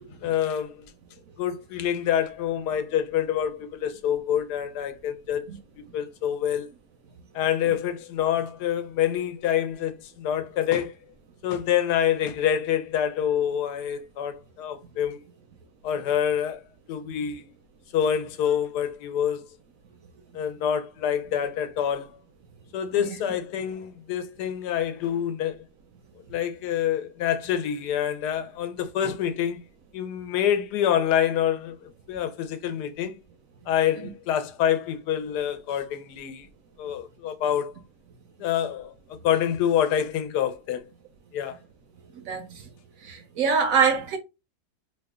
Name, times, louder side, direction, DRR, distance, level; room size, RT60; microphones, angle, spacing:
voice 1, 0.2-0.8 1.4-5.4 5.9-6.7 7.3-10.9 11.4-15.2 15.8-16.6 16.9-17.4 17.9-19.4 20.3-22.1 22.7-25.6 26.3-29.6 29.9-33.2 33.7-36.5 36.8-37.7 38.4-40.8 41.3-41.6, left 9 dB, 80° left, 1.2 m, -26 dB
voice 2, 42.3-42.6 43.0-44.2, right 5 dB, 70° right, 0.8 m, -23 dB
3.0 x 2.2 x 3.5 m
omnidirectional pair, 1.7 m